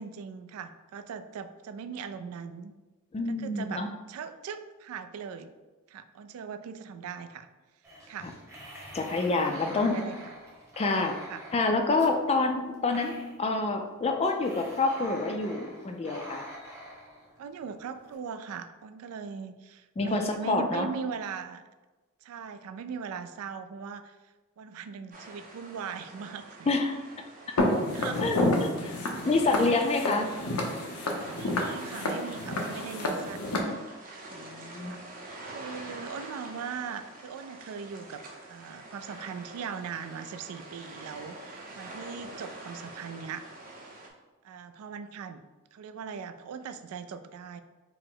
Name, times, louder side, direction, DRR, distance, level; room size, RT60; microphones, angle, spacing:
voice 1, 0.0-2.7 3.3-5.5 5.9-7.5 8.1-8.3 9.5-10.3 11.2-11.4 17.4-21.6 22.2-24.2 24.6-26.7 27.5-27.6 27.9-28.3 29.7-30.0 31.4-33.8 34.8-35.0 35.3-43.4 44.4-45.4 45.7-47.6, right 6 dB, 75° right, 13 dB, 0.3 m, -40 dB
voice 2, 3.1-3.9 8.9-10.0 10.8-11.2 11.5-13.1 13.4-16.5 20.0-20.9 26.7-27.0 28.2-28.7 29.2-30.3 34.3-34.9, left 3 dB, 30° left, 5 dB, 0.3 m, -27 dB
sound 1, 7.8-18.1, equal, 10° right, 0.8 m, -45 dB
sound 2, 25.1-44.1, right 2 dB, 40° right, 0.6 m, -46 dB
Walk footsteps, 27.6-33.6, left 1 dB, 80° left, 0.6 m, -29 dB
4.6 x 2.0 x 3.7 m, 1.2 s
head